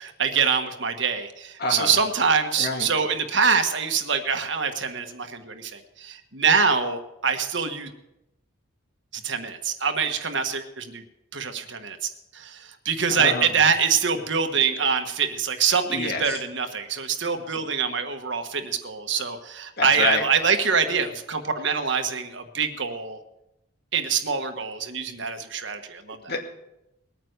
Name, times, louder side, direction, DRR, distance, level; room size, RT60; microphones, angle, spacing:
voice 1, 0.0-7.9 9.1-11.0 11.3-12.0 12.3-23.2 23.9-26.3, right 6 dB, 60° right, 6 dB, 1.4 m, -25 dB
voice 2, 1.6-1.9 2.6-2.9 13.1-13.4 15.9-16.4 19.8-20.2 26.3-26.4, left 3 dB, 50° left, 3 dB, 2.2 m, -27 dB
20.5 x 9.3 x 6.6 m, 0.88 s
head